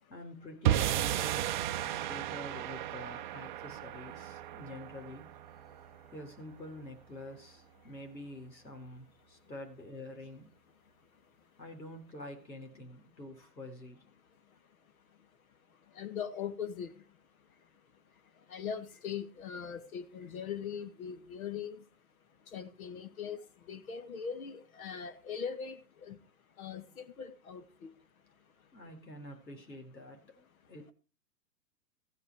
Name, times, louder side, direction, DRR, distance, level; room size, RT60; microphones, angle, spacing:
voice 1, 0.1-1.6 1.9-5.3 6.1-10.5 11.6-14.1 28.7-30.9, left 1 dB, 85° left, 4.5 m, -47 dB
sound 1, 0.6-7.0, right 12 dB, 30° right, 0.6 m, -34 dB
voice 2, 16.0-16.9 18.5-21.8 22.5-23.4 23.7-25.8 26.0-26.2 26.6-27.9, left 7 dB, 55° left, 2.0 m, -40 dB
15.5 x 9.0 x 4.8 m
figure-of-eight pair, 120°, 50 cm